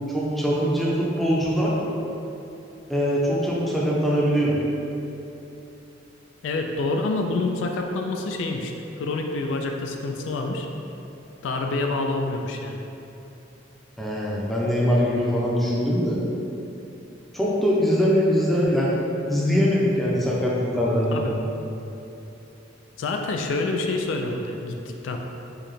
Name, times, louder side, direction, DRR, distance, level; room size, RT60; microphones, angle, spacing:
voice 1, 0.1-1.7 2.9-4.6 14.0-16.2 17.3-18.9 19.3-21.2, equal, ahead, -6 dB, 0.5 m, -22 dB
voice 2, 6.4-8.7 9.0-10.7 11.4-12.8 21.1-21.3 23.0-25.2, left 3 dB, 75° left, 3 dB, 0.3 m, -27 dB
4.6 x 2.1 x 3.1 m, 2.9 s
head